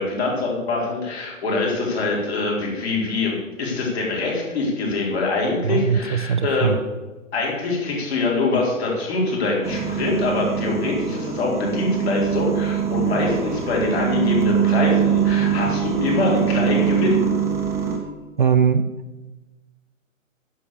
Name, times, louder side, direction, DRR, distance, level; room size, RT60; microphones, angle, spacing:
voice 1, 0.0-6.8 7.3-17.2, left 3 dB, 50° left, -2 dB, 4.2 m, -24 dB
voice 2, 5.6-6.8 18.4-18.9, right 7 dB, 40° right, 11 dB, 0.4 m, -20 dB
sound 1, 9.6-18.0, right 8 dB, 5° right, 0.9 m, -23 dB
10.0 x 6.8 x 7.2 m, 1.2 s
figure-of-eight pair, 130°, 40 cm